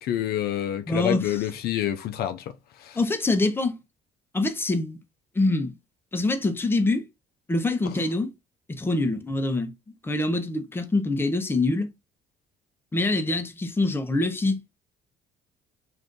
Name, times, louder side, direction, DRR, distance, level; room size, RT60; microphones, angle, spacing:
voice 1, 0.0-2.4 2.9-3.0, left 11 dB, 70° left, 0.5 m, -27 dB
voice 2, 0.9-1.4 3.0-3.8 4.3-5.0 5.3-5.7 6.1-7.1 7.5-8.3 8.7-9.7 10.0-11.9 12.9-14.6, left 2 dB, 15° left, 0.6 m, -25 dB
2.6 x 2.5 x 3.6 m
cardioid pair, 85°, 17 cm